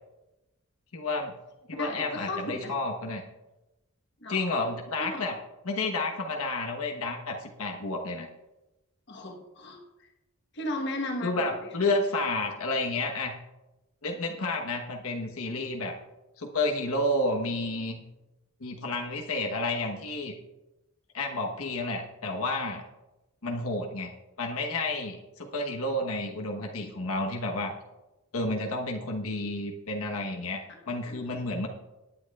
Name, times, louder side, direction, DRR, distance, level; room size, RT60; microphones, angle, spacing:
voice 1, 0.9-1.3 1.7-3.2 4.3-5.4 5.6-8.3 11.2-13.4 14.0-15.9 16.4-18.0 18.6-20.3 21.1-22.8 23.4-24.1 24.4-27.7 28.3-31.7, left 2 dB, 80° left, 1 dB, 1.1 m, -30 dB
voice 2, 1.7-2.7 4.2-4.7 5.0-5.2 9.1-9.8 10.5-11.7 31.1-31.4, left 1 dB, 50° left, 2 dB, 1.2 m, -35 dB
18.5 x 9.0 x 2.4 m, 1.0 s
head